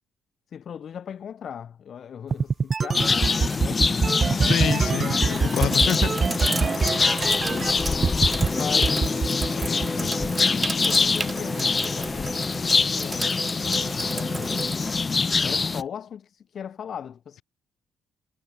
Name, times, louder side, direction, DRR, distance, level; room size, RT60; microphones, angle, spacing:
voice 1, 0.5-4.0 4.9-5.4 6.6-7.0 8.5-10.2 10.7-14.8 15.4-17.4, left 8 dB, 55° left, 2.9 m, -39 dB
sound 1, 2.3-7.7 8.0-8.5 8.8-10.3, right 5 dB, 40° right, 0.5 m, -24 dB
sound 2, 2.9-15.8, left 4 dB, 30° left, 2.1 m, -24 dB
Sink (filling or washing), 3.9-4.3 4.9-15.8, right 3 dB, 25° right, 0.9 m, -34 dB
voice 2, 4.4-6.1 6.5-6.6, left 11 dB, 75° left, 2.6 m, -28 dB
cardioid pair, 90°, 0 cm